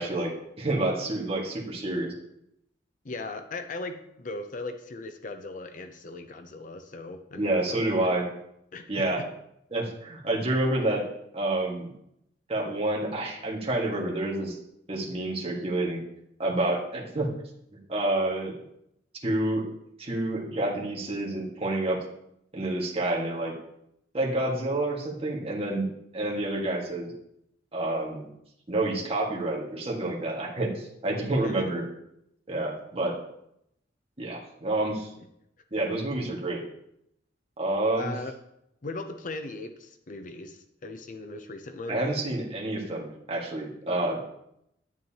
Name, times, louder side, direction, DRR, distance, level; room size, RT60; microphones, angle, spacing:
voice 1, 0.0-2.1 7.4-8.3 8.9-9.2 9.7-11.0 11.3-11.9 12.5-14.6 14.9-16.0 16.4-17.3 17.9-18.6 19.2-19.7 20.0-22.0 22.5-23.5 24.1-25.9 26.1-27.1 27.7-28.3 28.7-31.8 32.5-33.2 34.2-35.1 35.7-36.6 37.6-38.1 41.9-44.3, right 2 dB, 35° right, -3 dB, 1.7 m, -28 dB
voice 2, 3.0-8.2 8.7-9.3 31.4-31.7 38.0-38.3 38.8-42.0 43.9-44.1, left 2 dB, 45° left, 7 dB, 0.6 m, -38 dB
9.3 x 9.2 x 2.9 m, 0.78 s
head